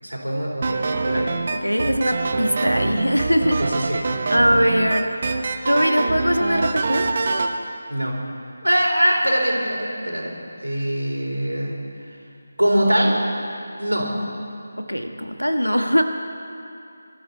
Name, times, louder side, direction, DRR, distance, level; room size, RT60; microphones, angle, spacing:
voice 1, 0.0-1.3 3.6-4.0 7.9-8.2 8.6-11.8 12.6-13.2 13.8-14.1, equal, 80° right, -1 dB, 4.0 m, -22 dB
sound 1, 0.6-7.5, right 3 dB, 35° right, 0.9 m, -24 dB
voice 2, 1.1-3.6 4.3-5.1 5.7-7.1 14.9-16.0, equal, 85° left, 5 dB, 1.5 m, -21 dB
23.5 x 12.5 x 4.3 m, 2.6 s
figure-of-eight pair, 160°, 0 cm